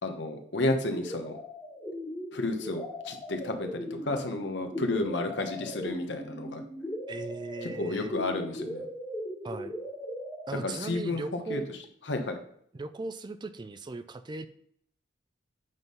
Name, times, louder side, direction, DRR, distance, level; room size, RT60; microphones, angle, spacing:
voice 1, 0.0-1.4 2.3-6.6 7.8-8.9 10.6-11.6 12.1-12.4, left 2 dB, 70° left, 5 dB, 1.1 m, -32 dB
sound 1, 0.8-10.4, equal, 15° left, 1.8 m, -39 dB
voice 2, 7.1-8.1 9.4-9.7 10.5-11.8 12.7-14.5, right 3 dB, 25° right, 11 dB, 0.3 m, -38 dB
8.1 x 3.8 x 5.4 m, 0.66 s
head